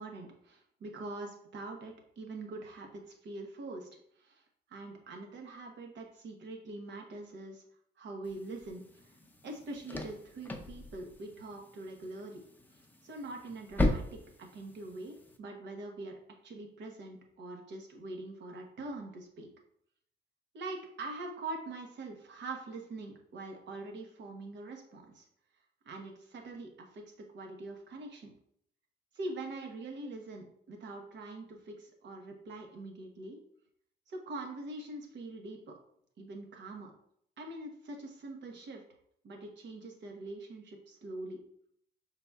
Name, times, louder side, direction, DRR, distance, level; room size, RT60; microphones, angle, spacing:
voice 1, 0.0-3.9 4.2-4.4 4.7-7.6 8.0-9.1 9.4-12.4 12.7-16.1 16.4-19.5 20.5-25.3 25.8-28.3 29.1-33.4 34.1-35.6 36.2-36.9 37.4-38.8 39.2-41.4, right 2 dB, 65° right, 2 dB, 1.1 m, -44 dB
sound 1, 8.2-15.4, left 1 dB, 10° left, 0.6 m, -38 dB
5.5 x 4.0 x 2.3 m, 0.69 s
cardioid pair, 90°, 20 cm